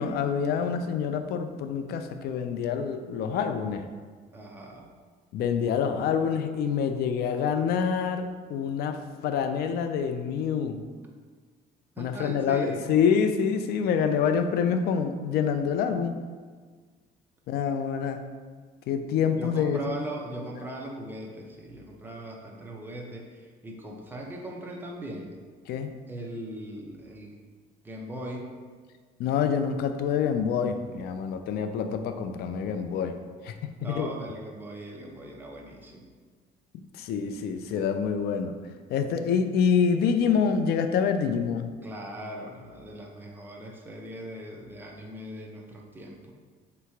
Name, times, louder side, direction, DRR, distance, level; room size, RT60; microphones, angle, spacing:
voice 1, 0.0-3.8 5.3-10.8 12.0-16.2 17.5-18.2 18.9-20.0 25.7-25.9 29.2-33.2 33.4-34.1 36.9-38.6 38.9-41.7, left 7 dB, 70° left, 8 dB, 0.4 m, -26 dB
voice 2, 4.3-4.9 12.0-12.8 19.4-25.4 26.1-27.4 27.8-28.5 33.8-36.1 41.8-46.3, right 1 dB, 10° right, -1 dB, 0.6 m, -39 dB
3.3 x 2.9 x 4.5 m, 1.5 s
cardioid pair, 110°, 17 cm